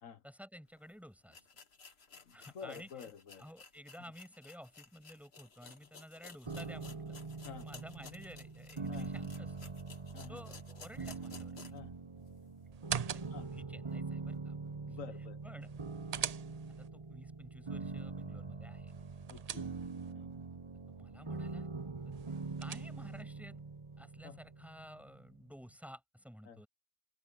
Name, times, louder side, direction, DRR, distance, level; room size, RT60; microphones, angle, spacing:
voice 1, 0.2-1.4 2.3-2.9 3.4-7.2 7.6-9.7 10.3-11.8 13.1-14.6 14.9-15.0 15.4-15.7 16.8-18.9 20.9-21.7 22.6-23.6 24.0-26.7, equal, ahead, 7.6 m, -53 dB
sound 1, 0.8-0.9 1.3-11.9 12.3-12.4 12.9-13.0, left 5 dB, 50° left, 1.8 m, -56 dB
voice 2, 2.3-3.5 7.4-7.7 8.9-9.1 10.1-10.4 11.7-11.9 13.3-13.5 14.9-15.4 16.2-16.3 19.3-19.7 20.1-20.3 24.2-24.4 26.4-26.6, left 7 dB, 80° left, 1.6 m, -49 dB
sound 2, 6.5-25.4, right 4 dB, 25° right, 0.9 m, -44 dB
sound 3, 12.7-13.6 15.6-16.9 18.9-20.1 22.1-23.2, right 8 dB, 85° right, 0.3 m, -42 dB
open air
omnidirectional pair, 1.4 m